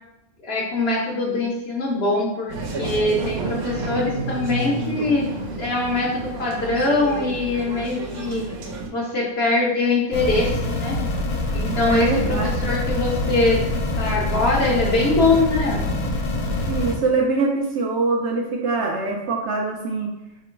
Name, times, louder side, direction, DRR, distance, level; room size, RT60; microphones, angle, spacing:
voice 1, 0.4-5.3 5.6-8.5 8.9-11.0 11.5-13.6 14.0-15.9, left 2 dB, 55° left, -2 dB, 0.9 m, -22 dB
sound 1, 2.5-8.9, right 3 dB, 85° right, 1.1 m, -30 dB
sound 2, 10.1-16.9, left 1 dB, 80° left, 1.2 m, -25 dB
voice 2, 11.9-12.5 16.7-20.1, right 3 dB, 65° right, 0 dB, 0.7 m, -23 dB
2.9 x 2.9 x 4.4 m, 0.90 s
omnidirectional pair, 1.5 m